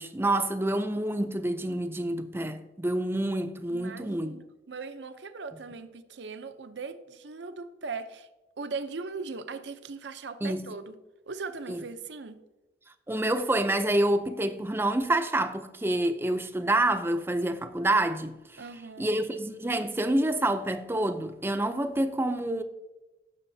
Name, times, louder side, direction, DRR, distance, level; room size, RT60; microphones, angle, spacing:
voice 1, 0.0-4.3 10.4-10.7 11.7-11.8 13.1-18.6 19.0-22.6, right 1 dB, 10° right, 0.5 m, -27 dB
voice 2, 3.7-8.3 8.6-10.9 11.3-12.4 18.6-19.1, right 4 dB, 75° right, 0.6 m, -39 dB
15.0 x 6.5 x 2.7 m
head